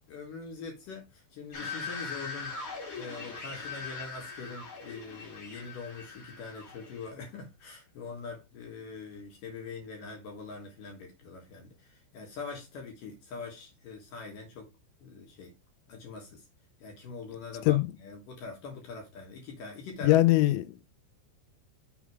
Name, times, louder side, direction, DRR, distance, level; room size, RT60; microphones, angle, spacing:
voice 1, 0.1-2.7 2.9-14.7 15.0-15.5 15.9-16.4 16.8-20.2, left 4 dB, 60° left, 2.7 m, -43 dB
sound 1, 1.5-7.1, left 4 dB, 40° left, 2.0 m, -41 dB
voice 2, 20.0-20.9, left 17 dB, 85° left, 3.1 m, -23 dB
7.3 x 3.6 x 4.7 m
omnidirectional pair, 5.3 m